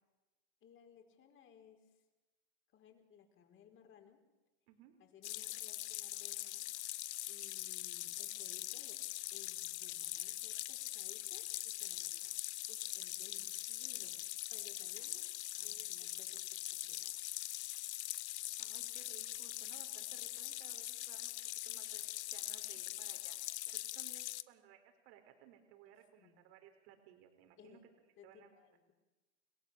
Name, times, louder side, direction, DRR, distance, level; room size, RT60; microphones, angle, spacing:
voice 1, 0.6-2.0 2.7-4.2 5.0-6.7 7.3-9.0 9.3-12.4 12.7-14.2 14.5-15.3 15.6-17.1 26.2-26.4 27.6-27.9 28.2-28.9, left 8 dB, 35° left, 4 dB, 4.9 m, -62 dB
sound 1, 5.2-24.4, left 16 dB, 70° left, 1.0 m, -42 dB
voice 2, 15.6-16.1 18.6-21.4 21.6-23.4 23.6-27.8 28.2-28.5, right 10 dB, 60° right, 5 dB, 4.2 m, -61 dB
30.0 x 17.0 x 7.3 m, 1.1 s
hypercardioid pair, 120°, 36 cm